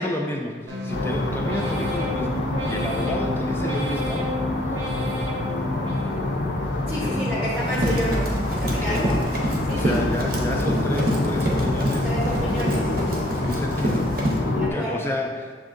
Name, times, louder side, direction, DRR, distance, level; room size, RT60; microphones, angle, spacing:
voice 1, 0.0-4.4 4.7-4.8 5.4-6.2 6.8-7.5 8.6-9.2 9.7-12.1 13.3-15.5, left 1 dB, 10° left, 1 dB, 0.3 m, -31 dB
sound 1, 0.7-6.5 6.9-7.6 8.0-8.7 9.1-9.8 10.2-10.8 11.3-11.8, left 1 dB, 80° right, 0.8 m, -33 dB
sound 2, 0.9-14.7, left 2 dB, 70° left, 0.5 m, -26 dB
voice 2, 6.9-9.2 9.6-10.0 12.0-12.9 14.6-15.1, equal, 5° right, -8 dB, 0.7 m, -30 dB
Run, 7.5-14.4, right 1 dB, 50° right, 0.7 m, -27 dB
7.1 x 2.6 x 2.5 m, 1.5 s
head